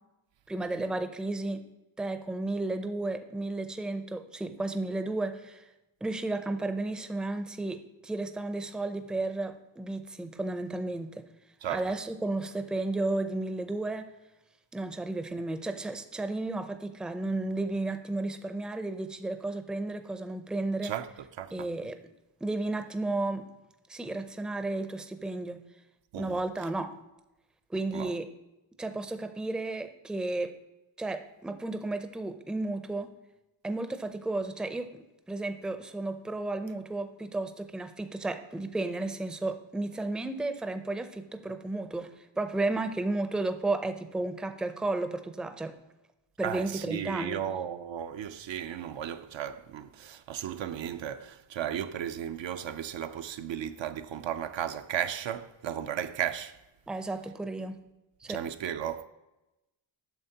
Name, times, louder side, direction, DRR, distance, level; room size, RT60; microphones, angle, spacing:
voice 1, 0.5-1.6 2.0-5.6 6.0-11.2 11.7-14.1 14.7-20.9 21.5-22.0 22.4-23.4 23.9-25.6 26.1-26.9 27.7-28.3 28.8-30.5 31.0-33.1 33.6-34.9 35.3-42.1 42.4-45.7 46.4-47.4 56.9-57.8 58.2-58.4, right 2 dB, ahead, 0.5 m, -33 dB
voice 2, 21.4-21.7 26.1-26.4 27.9-28.1 46.4-56.6 58.3-59.1, right 10 dB, 70° right, 0.5 m, -35 dB
9.0 x 6.4 x 2.8 m
cardioid pair, 70°, 47 cm